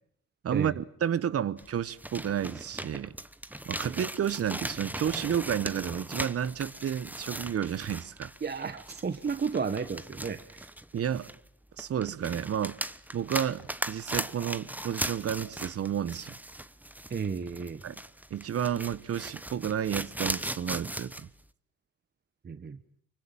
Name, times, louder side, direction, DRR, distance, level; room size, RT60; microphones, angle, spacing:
voice 1, 0.4-3.1 3.7-8.3 10.9-11.3 11.8-12.8 13.1-16.3 17.8-18.0 18.3-21.1, right 9 dB, 50° right, 1.1 m, -31 dB
sound 1, 1.6-11.5 11.8-21.3, right 1 dB, 5° right, 1.0 m, -38 dB
voice 2, 8.4-10.7 17.1-17.8 22.4-22.8, right 5 dB, 35° right, 1.3 m, -33 dB
24.5 x 24.0 x 9.0 m
cardioid pair, 90°, 30 cm